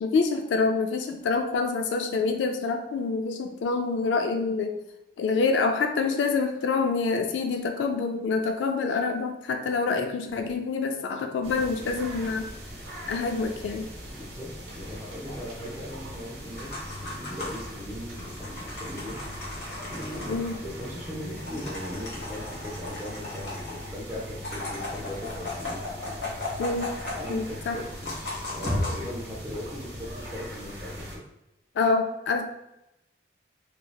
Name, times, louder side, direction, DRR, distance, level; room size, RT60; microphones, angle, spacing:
voice 1, 0.0-4.7 5.2-12.5 13.1-13.9 20.3-20.5 26.6-26.9 27.3-27.8 31.8-32.4, left 4 dB, 85° left, 5 dB, 0.3 m, -26 dB
sound 1, 11.4-31.2, equal, 75° right, 0.9 m, -39 dB
voice 2, 14.1-19.5 19.8-25.8 27.1-31.2, equal, 15° right, -5 dB, 0.5 m, -39 dB
sound 2, 16.5-17.8 18.2-20.5 20.9-21.0 21.2-23.9 24.3-27.5 27.8-29.0, left 2 dB, 70° left, 1.1 m, -37 dB
3.1 x 2.7 x 2.3 m, 0.89 s
head